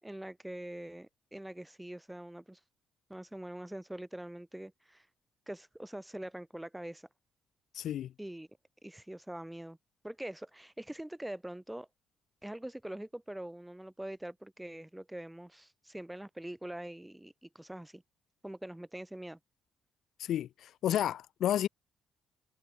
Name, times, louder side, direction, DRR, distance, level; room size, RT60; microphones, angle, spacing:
voice 1, 0.0-2.6 3.1-5.1 5.5-7.1 8.2-8.5 8.8-9.8 10.0-11.9 12.4-18.0 18.4-19.4, right 1 dB, 5° right, 6.7 m, -44 dB
voice 2, 7.7-8.1 20.2-21.7, left 11 dB, 75° left, 0.8 m, -31 dB
cardioid pair, 90°, 0 cm